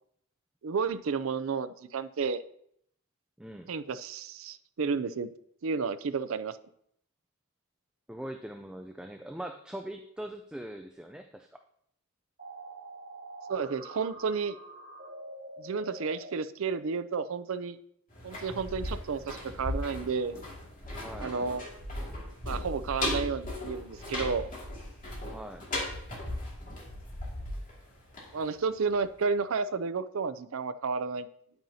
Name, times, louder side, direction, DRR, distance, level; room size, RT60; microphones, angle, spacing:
voice 1, 0.6-2.4 3.7-5.3 5.6-6.6 13.5-14.5 15.6-17.8 18.2-20.4 21.2-21.6 22.4-24.5 28.3-31.3, right 5 dB, 65° right, 13 dB, 0.5 m, -31 dB
voice 2, 3.4-3.7 8.1-11.6 21.0-21.3 25.3-25.6, right 1 dB, 5° right, 5 dB, 0.3 m, -42 dB
sound 1, 12.4-16.3, right 2 dB, 50° right, 3.0 m, -45 dB
sound 2, 18.1-28.9 29.2-29.3, left 1 dB, 40° left, 2.4 m, -37 dB
9.2 x 8.8 x 2.7 m, 0.71 s
head